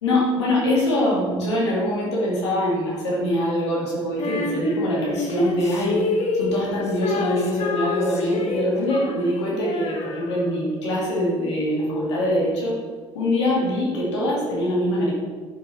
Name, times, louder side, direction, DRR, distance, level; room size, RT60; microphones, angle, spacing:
voice 1, 0.0-6.0 6.4-12.7 13.1-15.1, left 1 dB, 90° left, -5 dB, 2.8 m, -23 dB
Female singing, 4.2-10.7, left 3 dB, 50° left, 1.5 m, -28 dB
9.8 x 6.1 x 4.5 m, 1.5 s
hypercardioid pair, 65°, 14 cm